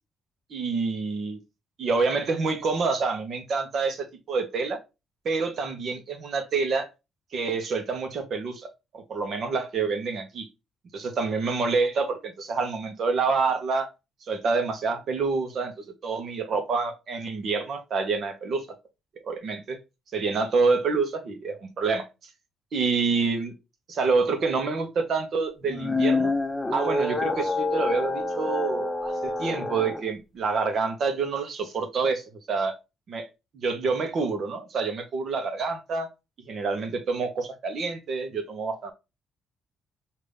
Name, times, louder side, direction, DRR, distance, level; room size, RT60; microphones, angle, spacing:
voice 1, 0.5-1.4 1.8-4.8 5.2-6.9 7.3-10.5 10.9-13.9 14.3-15.7 16.0-18.7 19.2-19.8 20.1-22.1 22.7-23.5 23.9-26.3 26.7-32.8 33.1-33.3 33.5-36.1 36.5-38.9, right 4 dB, 60° right, 1.2 m, -27 dB
sound 1, 25.6-30.0, left 2 dB, 15° left, 0.8 m, -27 dB
5.3 x 2.9 x 3.4 m
cardioid pair, 90°, 0 cm